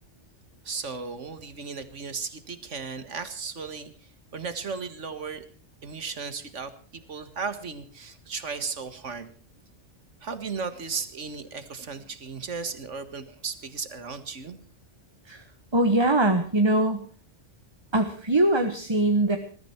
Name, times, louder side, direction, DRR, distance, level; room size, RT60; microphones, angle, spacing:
voice 1, 0.6-5.5 5.8-9.3 10.2-14.6, right 5 dB, 75° right, 11 dB, 2.0 m, -35 dB
voice 2, 15.7-17.1 17.9-19.4, right 1 dB, 20° right, 6 dB, 1.4 m, -22 dB
20.5 x 14.5 x 4.5 m, 0.41 s
omnidirectional pair, 1.3 m